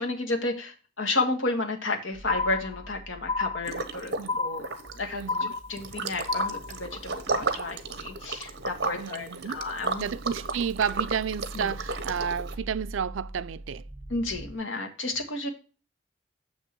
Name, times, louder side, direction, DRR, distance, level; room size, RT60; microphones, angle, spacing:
voice 1, 0.0-4.6 4.9-10.0 11.5-11.7 14.1-15.5, left 2 dB, 80° left, 1.7 m, -32 dB
sound 1, 2.1-14.5, right 1 dB, 35° right, 1.7 m, -45 dB
sound 2, 2.3-3.0 3.3-4.0 4.3-5.0 5.3-6.0 6.3-7.0, left 3 dB, 25° left, 0.3 m, -30 dB
Liquid, 3.6-4.3 4.6-12.5, right 3 dB, 55° right, 1.0 m, -33 dB
voice 2, 5.1-5.6 9.0-9.6 10.0-13.8, right 7 dB, 80° right, 0.4 m, -31 dB
7.1 x 6.4 x 4.4 m
head